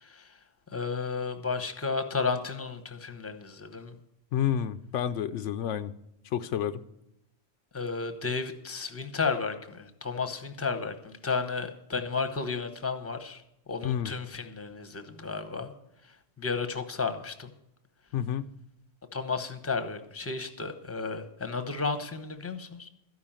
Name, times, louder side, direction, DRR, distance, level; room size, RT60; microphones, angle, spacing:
voice 1, 0.7-3.9 7.7-13.4 13.7-15.7 16.4-17.5 19.1-22.9, left 4 dB, 15° left, 9 dB, 0.8 m, -33 dB
voice 2, 4.3-5.9 6.3-6.8 13.8-14.1 18.1-18.5, left 9 dB, 80° left, 11 dB, 0.9 m, -29 dB
13.0 x 5.7 x 8.8 m, 0.82 s
omnidirectional pair, 1.2 m